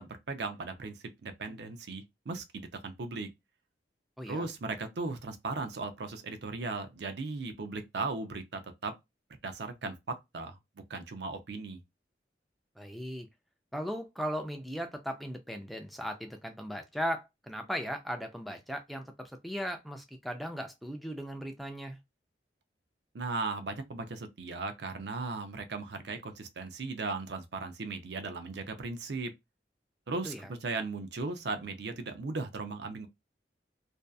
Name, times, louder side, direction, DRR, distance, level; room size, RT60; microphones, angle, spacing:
voice 1, 0.0-3.3 4.3-9.0 9.4-10.6 10.9-11.8 23.1-29.3 30.1-33.1, right 3 dB, 70° right, 0.5 m, -37 dB
voice 2, 4.2-4.5 12.8-13.3 13.7-22.0 30.2-30.4, equal, ahead, 0.4 m, -37 dB
2.6 x 2.3 x 2.2 m
head